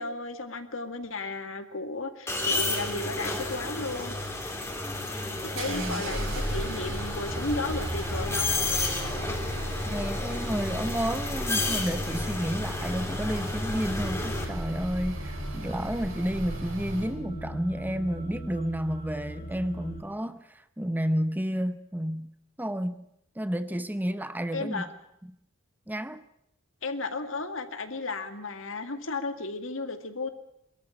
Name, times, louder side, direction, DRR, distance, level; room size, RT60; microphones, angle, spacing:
voice 1, 0.0-4.1 5.4-8.6 24.5-24.9 26.8-30.3, left 3 dB, 70° left, 8 dB, 2.1 m, -34 dB
sound 1, 2.3-14.4, left 2 dB, 15° left, 3.2 m, -32 dB
sound 2, 4.6-17.1, right 1 dB, 75° right, 6.7 m, -36 dB
voice 2, 5.7-6.0 9.9-22.3 22.6-23.1 23.4-24.9 25.2-25.3 25.9-26.2, equal, 10° right, 12 dB, 0.8 m, -31 dB
sound 3, 13.9-20.0, right 1 dB, 50° left, 3.3 m, -39 dB
23.0 x 13.5 x 9.8 m, 0.77 s
head